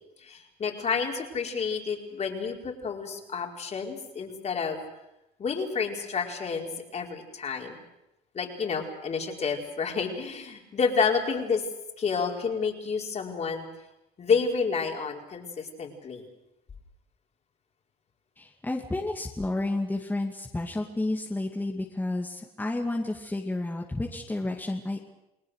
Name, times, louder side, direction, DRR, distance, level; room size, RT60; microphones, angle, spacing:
voice 1, 0.2-4.8 5.4-7.8 8.3-11.6 12.0-13.7 14.2-16.3, left 5 dB, 40° left, 1 dB, 4.8 m, -29 dB
voice 2, 18.4-25.0, left 2 dB, 10° left, 0 dB, 2.5 m, -31 dB
30.0 x 20.0 x 6.6 m, 0.90 s
cardioid pair, 110°, 17 cm